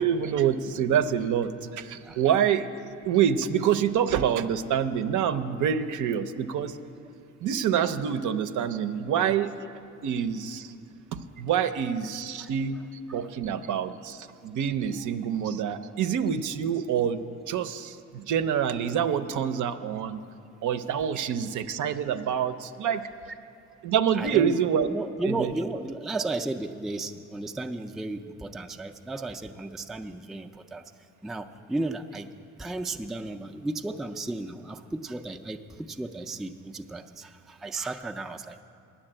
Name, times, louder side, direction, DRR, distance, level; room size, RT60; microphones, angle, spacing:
voice 1, 0.0-2.7 3.0-6.8 7.4-9.5 10.0-10.7 11.1-12.8 13.1-20.2 20.6-23.0 23.8-24.9 25.2-25.5, right 8 dB, 65° right, 11 dB, 0.6 m, -26 dB
voice 2, 24.1-24.6 24.9-30.8 31.2-32.3 32.6-38.6, right 2 dB, ahead, 5 dB, 0.3 m, -34 dB
9.9 x 7.2 x 8.7 m, 2.5 s
cardioid pair, 90°, 33 cm